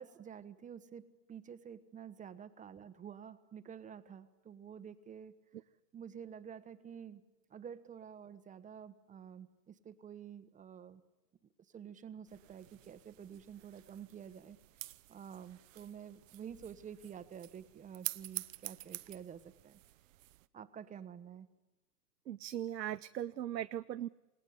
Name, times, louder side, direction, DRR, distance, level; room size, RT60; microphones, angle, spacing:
voice 1, 0.0-5.3 5.9-7.2 7.5-11.0 11.7-14.6 15.1-19.8 20.5-21.5, right 8 dB, 15° right, 11 dB, 1.1 m, -49 dB
sound 1, 12.3-20.5, right 17 dB, 50° right, 0.9 m, -48 dB
voice 2, 22.3-24.1, right 11 dB, 85° right, 12 dB, 0.7 m, -39 dB
28.0 x 18.0 x 8.3 m, 1.1 s
hypercardioid pair, 110°, 49 cm